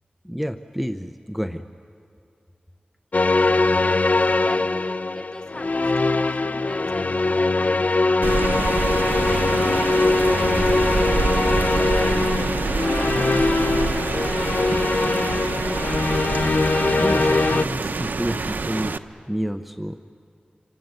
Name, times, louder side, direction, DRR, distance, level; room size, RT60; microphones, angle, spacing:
voice 1, 0.2-1.6 17.0-19.0 19.3-20.0, equal, ahead, 8 dB, 0.8 m, -29 dB
sound 1, 3.1-17.6, left 3 dB, 50° left, 0.6 m, -21 dB
voice 2, 4.4-8.6 9.1-11.3 11.6-14.6, left 1 dB, 25° left, 7 dB, 1.4 m, -39 dB
Rain, 8.2-19.0, right 3 dB, 75° right, 0.8 m, -26 dB
27.0 x 24.5 x 9.1 m, 2.4 s
wide cardioid pair, 80°, 3 cm